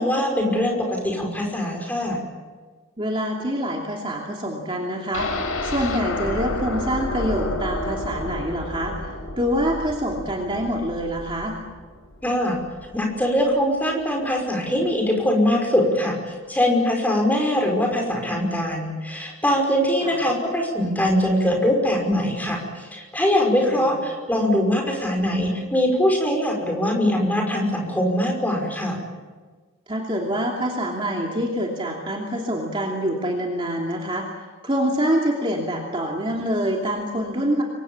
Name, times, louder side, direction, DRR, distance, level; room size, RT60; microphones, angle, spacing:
voice 1, 0.0-2.2 12.2-12.6 12.9-29.0, left 1 dB, 10° left, 1 dB, 5.7 m, -22 dB
voice 2, 3.0-11.6 20.0-20.2 23.6-23.9 29.9-37.6, equal, 25° right, -1 dB, 2.8 m, -26 dB
sound 1, 5.1-13.0 13.4-13.5 13.8-13.9, left 2 dB, 75° left, 4.6 m, -31 dB
29.0 x 24.0 x 7.3 m, 1.4 s
head